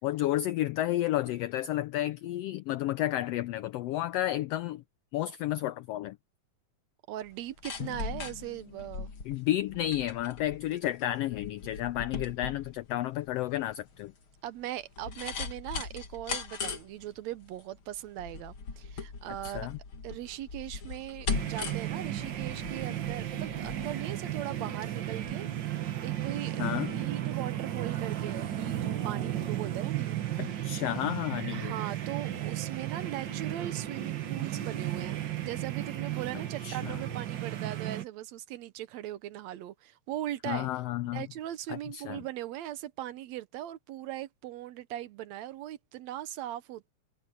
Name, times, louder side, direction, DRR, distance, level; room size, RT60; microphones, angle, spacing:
voice 1, 0.0-4.8 5.1-6.2 9.2-14.1 19.4-19.8 26.6-26.9 30.4-31.7 36.6-37.0 40.4-41.3 41.7-42.2, left 14 dB, 90° left, 1.4 m, -31 dB
voice 2, 7.1-9.1 14.4-19.7 20.0-30.5 31.5-40.7 41.1-46.9, right 13 dB, 75° right, 1.9 m, -39 dB
sound 1, 7.3-24.9 25.2-25.3, left 5 dB, 45° left, 2.9 m, -40 dB
Drum, 7.8-10.5, left 15 dB, 70° left, 2.6 m, -47 dB
sound 2, 21.3-38.0, right 12 dB, 55° right, 1.3 m, -34 dB
omnidirectional pair, 3.4 m